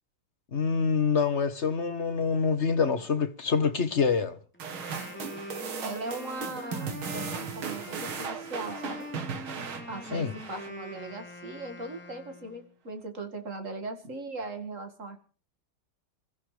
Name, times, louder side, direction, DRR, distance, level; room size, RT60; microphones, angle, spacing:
voice 1, 0.5-4.4 10.1-10.3, left 5 dB, 40° left, 1.3 m, -26 dB
Wind instrument woodwind instrument, 4.5-12.7, left 1 dB, 5° left, 3.6 m, -43 dB
sound 1, 4.6-11.1, right 6 dB, 70° right, 2.5 m, -37 dB
voice 2, 5.8-9.0 9.9-15.2, right 2 dB, 35° right, 2.4 m, -39 dB
27.0 x 14.0 x 3.3 m
omnidirectional pair, 2.4 m